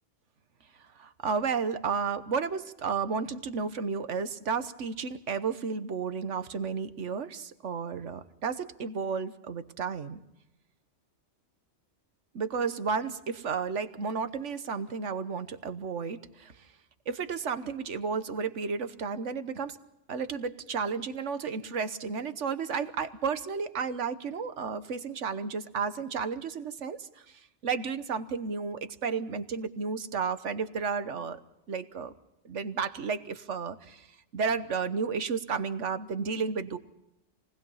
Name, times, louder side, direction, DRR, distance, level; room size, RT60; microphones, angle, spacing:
voice 1, 1.0-10.2 12.3-16.7 17.1-19.8 20.1-31.4 31.7-32.1 32.4-34.1 34.3-36.8, right 5 dB, 75° right, 11 dB, 1.4 m, -32 dB
28.5 x 19.5 x 5.6 m, 0.92 s
omnidirectional pair, 1.3 m